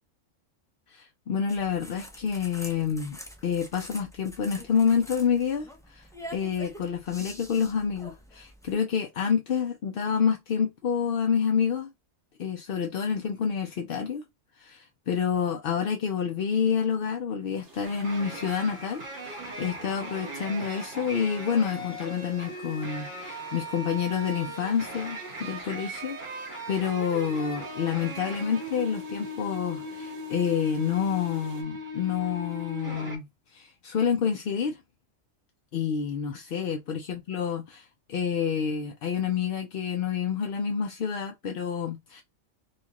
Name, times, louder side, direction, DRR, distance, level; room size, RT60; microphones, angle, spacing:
voice 1, 0.9-3.2 3.4-11.9 12.4-14.2 14.6-33.2 33.5-34.8 35.7-42.2, left 7 dB, 60° left, 0.6 m, -28 dB
sound 1, 1.5-8.7, equal, 5° left, 0.4 m, -45 dB
sound 2, 17.6-31.6, right 3 dB, 65° right, 1.8 m, -53 dB
sound 3, 17.8-33.2, equal, 40° right, 1.5 m, -39 dB
4.1 x 2.4 x 2.9 m
omnidirectional pair, 1.3 m